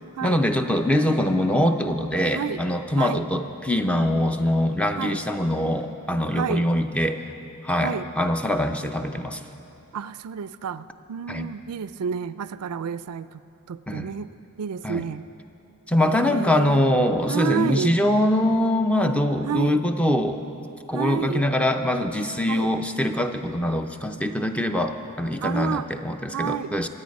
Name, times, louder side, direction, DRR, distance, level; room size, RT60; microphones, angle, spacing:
voice 1, 0.2-7.3 7.6-9.4 11.3-11.5 13.9-14.1 14.8-15.1 15.9-20.4 20.9-26.9, left 1 dB, 5° left, 6 dB, 0.5 m, -23 dB
voice 2, 6.3-6.6 7.8-8.1 9.9-13.4 13.7-14.3 14.6-15.2 16.0-16.8 17.3-18.0 19.5-19.8 20.9-21.4 22.5-22.7 25.4-25.9 26.3-26.7, right 7 dB, 80° right, 15 dB, 0.4 m, -30 dB
23.5 x 8.6 x 5.3 m, 2.8 s
head